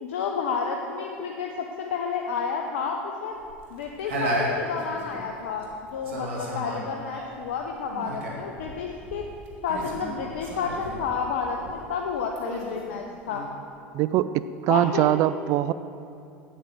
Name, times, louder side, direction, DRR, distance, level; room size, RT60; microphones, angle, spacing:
voice 1, 0.0-3.3 3.7-9.2 9.6-13.5 14.7-15.1, left 5 dB, 80° left, 1 dB, 0.9 m, -30 dB
sound 1, 3.3-5.7 6.0-12.0 12.4-13.4, right 1 dB, 80° right, 2.1 m, -34 dB
voice 2, 13.9-14.3 14.6-15.7, right 13 dB, 55° right, 15 dB, 0.4 m, -22 dB
9.1 x 8.5 x 6.9 m, 2.7 s
hypercardioid pair, 85°, 6 cm